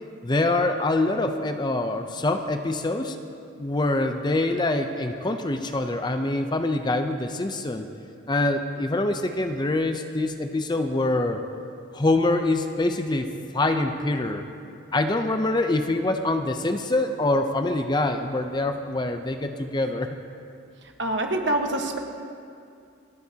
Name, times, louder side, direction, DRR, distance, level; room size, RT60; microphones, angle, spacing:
voice 1, 0.2-3.2 3.6-7.9 8.3-11.4 11.9-13.3 13.5-14.4 14.9-20.1, left 2 dB, 25° left, 7 dB, 0.5 m, -25 dB
voice 2, 21.0-22.0, right 1 dB, 65° right, 3 dB, 1.3 m, -25 dB
28.0 x 9.5 x 2.8 m, 2.4 s
head